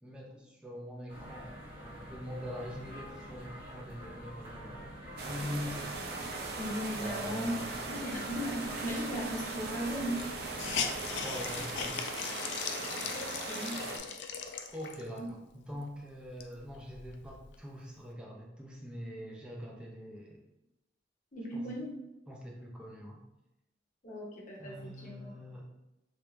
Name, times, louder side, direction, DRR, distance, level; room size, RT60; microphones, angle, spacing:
voice 1, 0.0-1.6 1.8-5.9 6.9-7.7 11.1-12.0 14.7-20.4 21.5-21.7 22.3-23.2 24.6-25.7, equal, 5° right, -3 dB, 0.5 m, -43 dB
sound 1, 1.1-11.9, equal, 30° right, 1.0 m, -47 dB
sound 2, 5.2-14.0, right 3 dB, 60° right, 0.5 m, -39 dB
voice 2, 6.6-10.2 13.1-13.8 21.3-21.9 24.0-25.3, equal, 45° left, -3 dB, 0.9 m, -37 dB
Hiss, 9.3-9.4 9.6-9.7 10.1-15.2 15.7-15.8 16.2-17.6, left 6 dB, 70° left, 0.4 m, -39 dB
3.3 x 2.5 x 3.0 m, 0.91 s
head